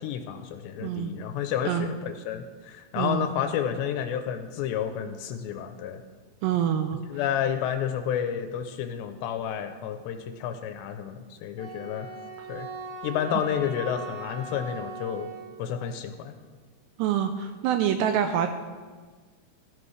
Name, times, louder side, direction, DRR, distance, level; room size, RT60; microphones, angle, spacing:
voice 1, 0.0-6.0 7.1-12.1 12.5-12.7 13.0-15.3 15.6-16.3, left 9 dB, 80° left, 7 dB, 2.7 m, -30 dB
voice 2, 0.8-1.1 1.7-1.9 3.0-3.3 6.4-7.0 12.4-12.5 17.0-18.5, right 9 dB, 85° right, 7 dB, 2.5 m, -26 dB
Wind instrument woodwind instrument, 11.6-15.8, right 3 dB, 65° right, 2.6 m, -40 dB
16.0 x 13.0 x 3.3 m, 1.4 s
omnidirectional pair, 5.3 m